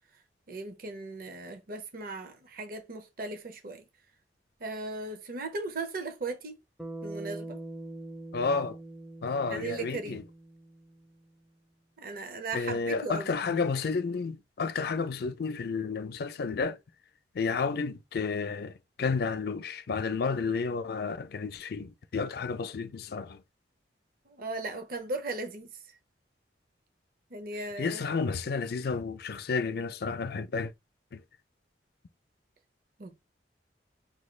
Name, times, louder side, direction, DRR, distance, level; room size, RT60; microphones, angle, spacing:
voice 1, 0.5-3.8 4.6-6.6 7.0-7.6 9.5-10.2 12.0-13.3 24.3-26.0 27.3-28.1 33.0-33.3, right 3 dB, 50° right, 0.6 m, -37 dB
Bass guitar, 6.8-11.2, right 2 dB, ahead, 0.4 m, -43 dB
voice 2, 8.3-8.8 9.2-10.2 12.5-16.8 17.3-23.4 27.8-30.7 31.1-31.2, left 4 dB, 60° left, 0.4 m, -31 dB
5.6 x 2.3 x 3.1 m
head